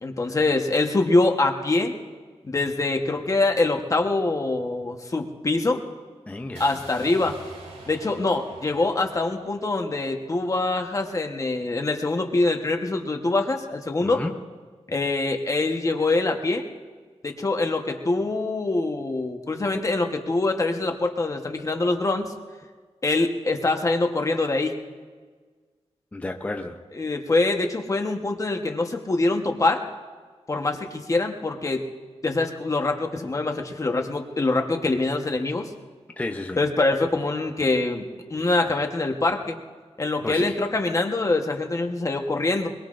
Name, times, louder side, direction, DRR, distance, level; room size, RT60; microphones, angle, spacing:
voice 1, 0.0-1.9 2.4-5.8 6.6-7.4 7.9-14.2 14.9-16.6 17.2-22.3 23.0-24.8 27.0-29.8 30.5-31.8 32.2-35.7 36.6-39.6 40.0-42.7, left 2 dB, 30° left, 4 dB, 1.1 m, -24 dB
voice 2, 6.3-6.9 14.0-14.4 26.1-26.8 36.2-36.6 40.2-40.6, left 2 dB, 15° left, 4 dB, 0.6 m, -32 dB
sound 1, 6.5-10.6, right 2 dB, 90° right, 3.5 m, -46 dB
24.0 x 22.0 x 2.5 m, 1.5 s
wide cardioid pair, 170°, 11 cm